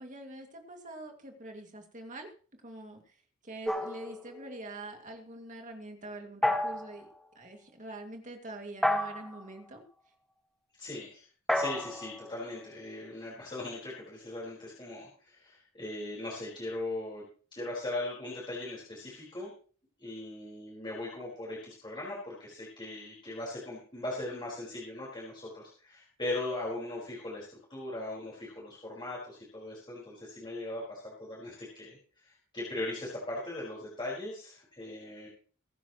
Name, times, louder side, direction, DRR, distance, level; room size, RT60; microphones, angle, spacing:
voice 1, 0.0-2.3 2.6-3.2 3.4-7.1 7.3-9.8, right 2 dB, 35° right, 4 dB, 2.3 m, -45 dB
sound 1, 3.7-4.8 6.4-7.0 8.8-9.5 11.5-13.2, left 1 dB, ahead, 1.7 m, -32 dB
voice 2, 10.8-11.2 11.5-17.2 17.5-19.5 20.0-32.0 32.2-35.3, left 2 dB, 20° left, -6 dB, 4.9 m, -39 dB
22.5 x 10.0 x 3.1 m, 0.41 s
head